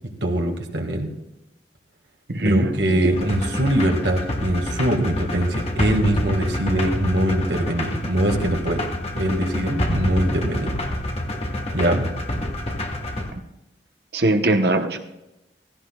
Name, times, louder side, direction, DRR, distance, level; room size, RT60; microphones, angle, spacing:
voice 1, 0.2-1.1 2.4-8.8 9.1-10.7 11.7-12.0, right 1 dB, 85° right, 2 dB, 2.0 m, -22 dB
voice 2, 2.3-3.3 14.1-15.0, right 1 dB, 65° right, 5 dB, 1.1 m, -21 dB
sound 1, 3.1-13.3, left 1 dB, 35° left, 1.5 m, -27 dB
16.5 x 16.0 x 2.4 m, 0.94 s
head